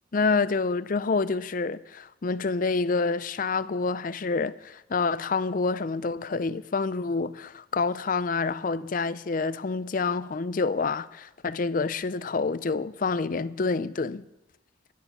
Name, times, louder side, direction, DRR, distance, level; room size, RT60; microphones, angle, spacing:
voice 1, 0.1-14.2, left 4 dB, 40° left, 0.4 m, -27 dB
17.0 x 10.5 x 6.0 m
head